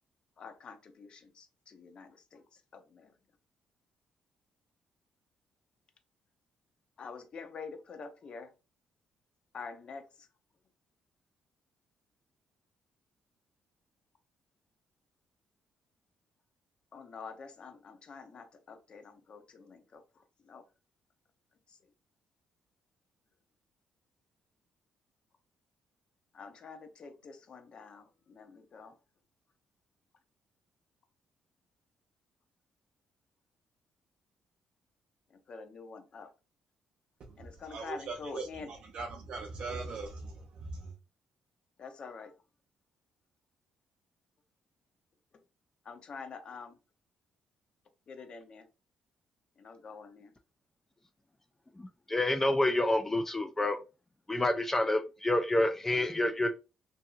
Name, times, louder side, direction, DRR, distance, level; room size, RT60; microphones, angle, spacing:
voice 1, 0.4-2.4 2.7-3.1 7.0-8.5 9.5-10.0 16.9-20.6 21.7-21.8 26.3-28.9 35.5-36.3 37.4-38.7 41.8-42.3 45.8-46.8 48.1-48.7 49.6-50.3, left 5 dB, 50° left, 0.7 m, -47 dB
voice 2, 37.2-40.9, right 3 dB, 60° right, 0.5 m, -41 dB
voice 3, 51.8-53.8 54.3-56.6, left 1 dB, 15° left, 0.4 m, -28 dB
2.7 x 2.6 x 2.3 m
cardioid pair, 80°, 2 cm